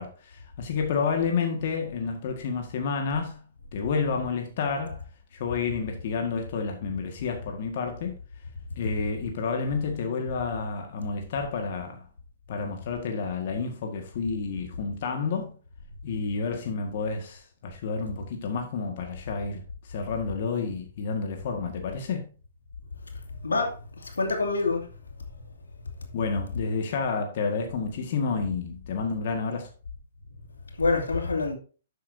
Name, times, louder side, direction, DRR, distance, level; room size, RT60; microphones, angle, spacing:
voice 1, 0.0-3.4 3.7-5.0 5.3-8.2 8.8-12.0 12.5-15.5 16.0-22.3 26.1-29.7, left 5 dB, 55° left, 1.8 m, -30 dB
voice 2, 23.4-24.9 30.7-31.6, left 3 dB, 85° left, 2.5 m, -26 dB
11.5 x 8.3 x 2.8 m
hypercardioid pair, 125°, 0 cm